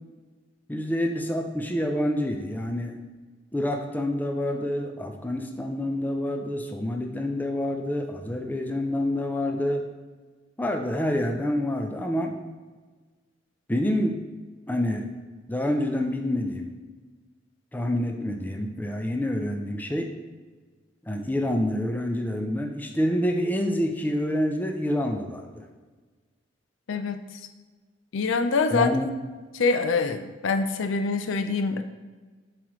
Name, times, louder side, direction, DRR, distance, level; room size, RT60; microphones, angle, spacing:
voice 1, 0.7-3.0 3.5-9.9 10.6-12.4 13.7-14.2 14.7-15.1 15.5-16.7 17.7-20.1 21.1-25.7 28.7-29.1, left 1 dB, 10° left, 4 dB, 0.5 m, -27 dB
voice 2, 26.9-27.2 28.1-28.9 29.5-31.8, left 4 dB, 80° left, 8 dB, 0.5 m, -25 dB
7.4 x 4.8 x 3.1 m, 1.4 s
head